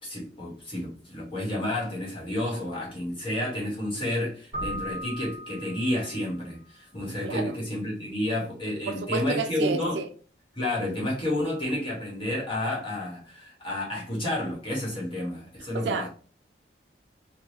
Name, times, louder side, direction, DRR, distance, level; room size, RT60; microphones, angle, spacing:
voice 1, 0.0-10.0 10.5-16.1, left 1 dB, 30° left, 1.4 m, -30 dB
Keyboard (musical), 4.5-6.3, equal, 20° right, 1.5 m, -37 dB
voice 2, 8.9-10.1 15.8-16.1, right 4 dB, 75° right, 0.4 m, -30 dB
3.3 x 2.5 x 2.8 m
head